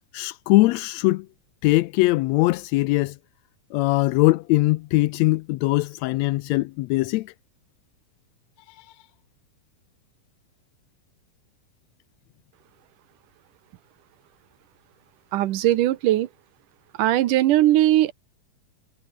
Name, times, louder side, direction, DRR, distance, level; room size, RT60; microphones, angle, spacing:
voice 1, 0.1-1.3 1.6-3.2 3.7-7.3 8.8-8.9, left 20 dB, 85° left, 1.6 m, -21 dB
voice 2, 15.3-16.3 17.0-18.1, right 14 dB, 85° right, 2.6 m, -19 dB
omnidirectional pair, 3.7 m